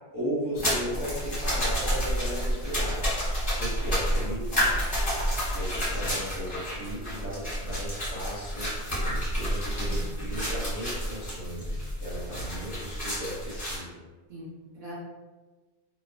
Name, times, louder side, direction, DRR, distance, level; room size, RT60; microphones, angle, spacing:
voice 1, 0.1-3.1 3.6-5.0 5.5-8.7 9.0-14.0, equal, 15° right, -11 dB, 0.8 m, -36 dB
sound 1, 0.6-13.8, equal, 30° left, 1.5 m, -30 dB
voice 2, 9.8-10.3 14.3-14.9, equal, 55° right, -8 dB, 0.6 m, -43 dB
3.1 x 2.1 x 2.2 m, 1.3 s
omnidirectional pair, 1.1 m